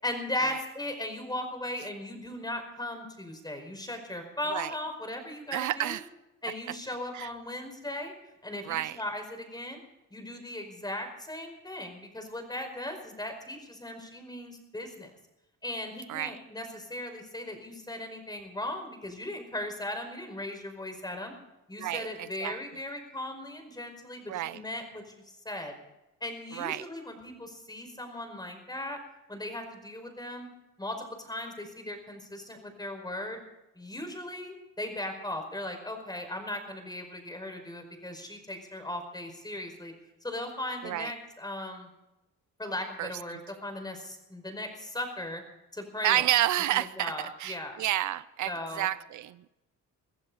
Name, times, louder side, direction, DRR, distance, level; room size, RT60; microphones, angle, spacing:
voice 1, 0.0-6.0 6.4-8.1 8.4-9.8 10.1-15.1 15.6-21.3 21.7-25.7 26.2-29.0 29.3-30.5 30.8-33.4 33.7-39.9 40.2-41.9 42.6-45.4 45.7-46.4 46.7-47.8 48.4-48.9, left 1 dB, 15° left, 5 dB, 5.1 m, -38 dB
voice 2, 5.5-6.0 7.1-7.3 8.7-9.0 16.1-16.3 21.8-22.1 22.4-22.5 24.3-24.6 26.6-26.8 40.8-41.1 43.0-43.1 46.0-47.1 47.4-48.5 48.8-49.5, right 14 dB, 75° right, 17 dB, 0.6 m, -29 dB
23.0 x 15.0 x 4.1 m, 0.93 s
cardioid pair, 90°, 30 cm